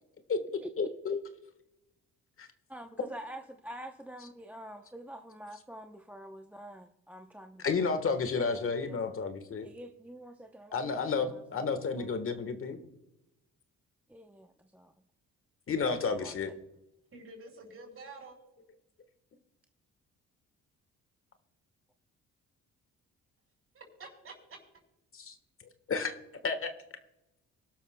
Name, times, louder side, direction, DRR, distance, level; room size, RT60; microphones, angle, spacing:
voice 1, 0.8-1.2 2.4-2.5 4.2-4.3 7.6-9.7 10.7-12.8 15.7-16.5 25.1-25.3 25.9-26.1 26.4-26.7, left 5 dB, 45° left, 1.4 m, -31 dB
voice 2, 2.7-7.6 8.5-9.2 9.6-11.2 11.6-11.7 12.0-12.1 14.1-14.5 16.2-16.5, right 1 dB, 5° right, 0.7 m, -47 dB
voice 3, 17.1-18.4 23.7-24.6, right 3 dB, 45° right, 5.3 m, -48 dB
24.0 x 12.0 x 2.2 m
cardioid pair, 90°, 30 cm